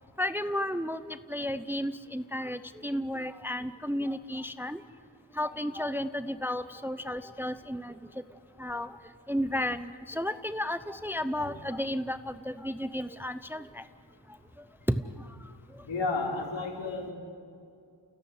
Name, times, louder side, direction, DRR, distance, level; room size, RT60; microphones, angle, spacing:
voice 1, 0.2-4.8 5.4-7.9 8.6-8.9 9.3-13.8 14.9-15.0, left 1 dB, 5° right, 12 dB, 0.7 m, -33 dB
voice 2, 15.8-17.1, left 3 dB, 75° left, 0 dB, 4.9 m, -32 dB
29.5 x 16.5 x 9.6 m, 2.4 s
wide cardioid pair, 85°, 45 cm